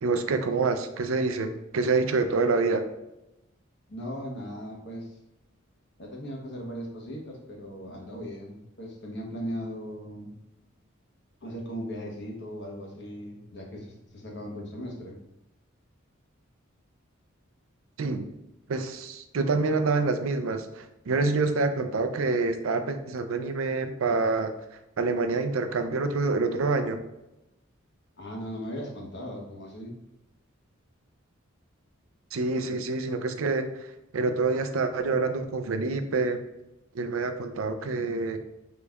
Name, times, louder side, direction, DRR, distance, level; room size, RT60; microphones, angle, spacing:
voice 1, 0.0-2.8 18.0-18.3 18.7-24.5 25.0-27.0 32.3-33.9 34.1-36.4 36.9-38.4, right 3 dB, 80° right, 8 dB, 0.5 m, -27 dB
voice 2, 3.9-5.2 6.0-10.3 11.4-15.2 28.2-30.0, equal, 55° left, -1 dB, 1.1 m, -38 dB
5.0 x 4.0 x 2.3 m, 0.92 s
head